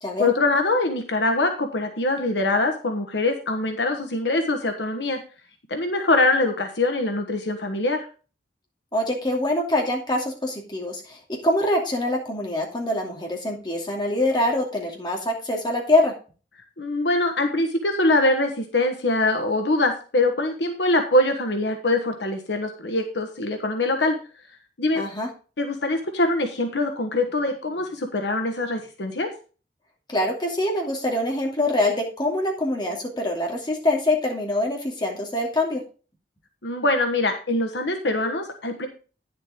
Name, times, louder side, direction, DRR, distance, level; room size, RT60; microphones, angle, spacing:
voice 1, 0.2-5.2 5.7-8.1 16.8-24.1 24.8-25.0 25.6-29.3 36.6-38.9, left 2 dB, 75° left, 5 dB, 1.3 m, -23 dB
voice 2, 8.9-16.1 25.0-25.3 30.1-35.8, left 1 dB, 25° left, 0 dB, 2.6 m, -24 dB
9.8 x 7.4 x 3.7 m, 0.35 s
head